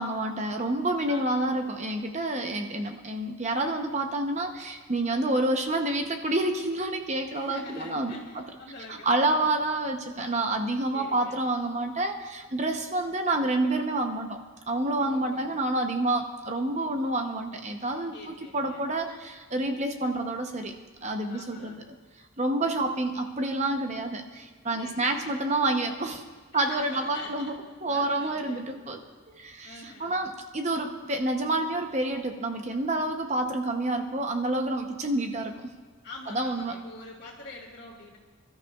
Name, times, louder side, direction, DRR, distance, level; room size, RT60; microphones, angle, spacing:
voice 1, 0.0-8.4 9.0-14.4 14.7-20.7 21.0-21.9 22.4-26.2 26.5-27.5 27.8-29.0 29.3-35.7 36.3-36.7, right 2 dB, 30° right, 5 dB, 0.8 m, -28 dB
voice 2, 1.1-1.5 7.3-9.5 10.9-11.5 15.0-15.6 18.1-18.9 21.3-21.8 24.7-25.3 26.5-29.1 29.6-30.1 36.0-38.2, left 2 dB, 50° left, -1 dB, 2.7 m, -45 dB
25.5 x 13.0 x 2.4 m, 1.5 s
head